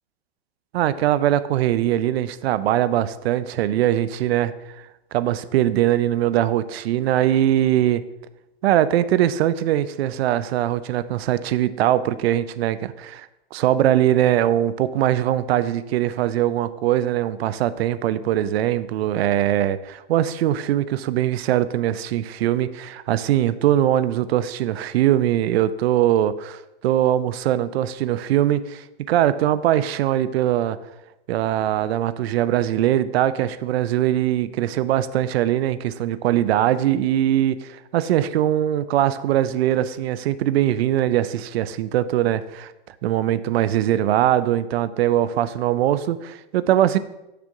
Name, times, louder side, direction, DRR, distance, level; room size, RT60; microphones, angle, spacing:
voice 1, 0.7-4.5 5.1-8.0 8.6-30.8 31.3-42.7 43.0-47.0, right 12 dB, 80° right, 15 dB, 0.5 m, -21 dB
6.7 x 6.5 x 3.6 m, 0.94 s
hypercardioid pair, 125°, 31 cm